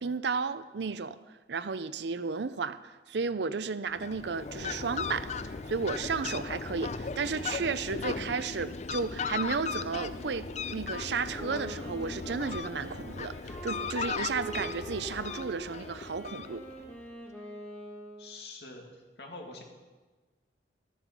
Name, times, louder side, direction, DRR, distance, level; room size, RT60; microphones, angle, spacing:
voice 1, 0.0-1.2 1.5-2.8 3.1-16.7, right 5 dB, 70° right, 14 dB, 0.6 m, -33 dB
Fowl, 3.9-16.9, left 5 dB, 40° left, 0.5 m, -37 dB
Wind instrument woodwind instrument, 11.3-18.4, right 1 dB, 10° left, 2.2 m, -45 dB
voice 2, 18.2-19.6, left 2 dB, 65° left, 2 dB, 2.3 m, -45 dB
14.0 x 9.4 x 6.0 m, 1.3 s
head